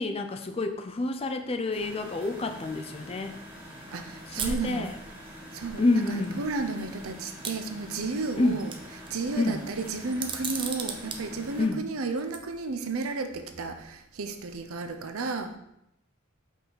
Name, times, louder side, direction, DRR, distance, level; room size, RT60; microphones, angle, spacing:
voice 1, 0.0-3.4 4.3-5.0 5.8-6.4 8.4-8.6 9.4-9.6 11.6-11.8, left 2 dB, 30° left, 7 dB, 0.4 m, -28 dB
sound 1, 1.7-11.7, equal, 10° right, 2.1 m, -45 dB
voice 2, 3.9-4.9 5.5-8.7 9.1-15.6, right 3 dB, 80° right, 7 dB, 0.6 m, -33 dB
sound 2, 4.4-4.6 5.7-5.8 6.2-6.3 7.4-8.2 8.6-9.1 10.1-11.2 12.2-12.4, right 6 dB, 25° right, 0.5 m, -34 dB
5.3 x 4.6 x 4.0 m, 0.80 s
head